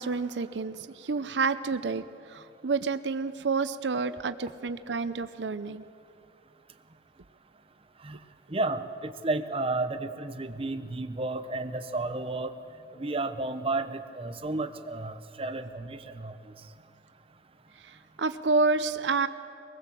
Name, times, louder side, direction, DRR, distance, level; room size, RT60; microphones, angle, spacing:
voice 1, 0.0-2.0 2.3-5.8 17.8-19.3, right 4 dB, 85° right, 12 dB, 0.7 m, -29 dB
voice 2, 8.5-12.5 12.9-16.3, right 2 dB, 35° right, 7 dB, 1.0 m, -32 dB
23.0 x 20.0 x 7.5 m, 2.5 s
head